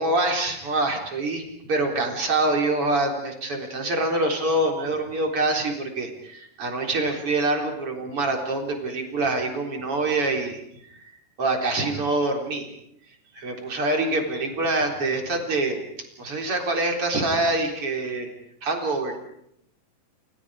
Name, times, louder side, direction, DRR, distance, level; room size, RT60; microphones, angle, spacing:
voice 1, 0.0-10.6 11.4-12.7 13.4-15.8 16.2-18.3 18.6-19.2, right 2 dB, 40° right, 2 dB, 4.7 m, -25 dB
29.5 x 28.5 x 5.0 m, 0.77 s
omnidirectional pair, 3.9 m